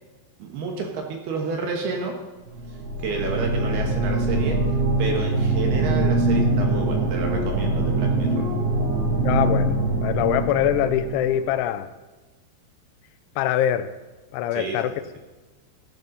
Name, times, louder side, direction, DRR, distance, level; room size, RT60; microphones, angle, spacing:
voice 1, 0.4-2.2 2.7-4.6 5.0-8.4 14.5-14.8, right 4 dB, 65° right, 2 dB, 3.0 m, -30 dB
sound 1, 2.5-11.4, right 2 dB, 30° right, 1.9 m, -23 dB
voice 2, 9.2-11.9 13.4-13.9 14.3-14.9, left 11 dB, 85° left, 10 dB, 3.0 m, -23 dB
14.0 x 10.5 x 4.1 m, 1.2 s
omnidirectional pair, 5.4 m